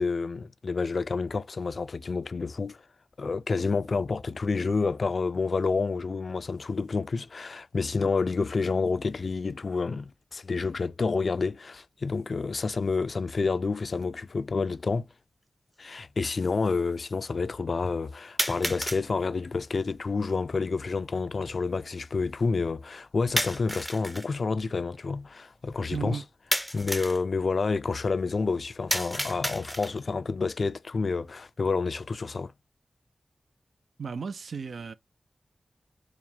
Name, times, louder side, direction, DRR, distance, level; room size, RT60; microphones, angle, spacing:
voice 1, 0.0-2.8 3.2-15.1 15.8-26.2 26.7-32.5, left 4 dB, 60° left, 0.3 m, -29 dB
sound 1, 14.0-14.1 15.1-15.2 18.4-19.0 23.4-24.3 26.5-27.2 28.9-30.1, equal, ahead, 0.4 m, -31 dB
voice 2, 25.9-26.2 34.0-34.9, right 6 dB, 80° right, 0.4 m, -34 dB
4.7 x 2.1 x 3.4 m
wide cardioid pair, 65°, 0 cm